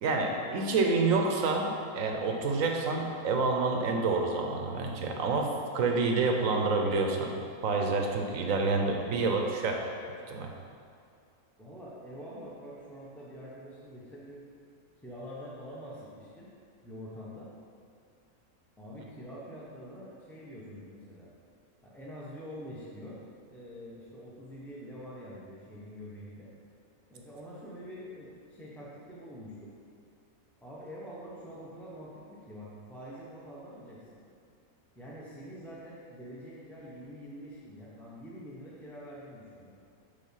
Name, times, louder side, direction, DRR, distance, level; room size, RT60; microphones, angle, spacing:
voice 1, 0.0-7.4 7.6-9.9 10.3-10.5, right 3 dB, 70° right, 2 dB, 1.1 m, -28 dB
voice 2, 11.6-14.4 15.0-16.5 16.8-17.5 18.8-21.3 21.8-23.2 23.4-26.5 27.1-29.8 30.6-34.2 34.9-39.7, equal, ahead, -7 dB, 0.8 m, -45 dB
8.4 x 3.7 x 5.7 m, 2.4 s
omnidirectional pair, 1.5 m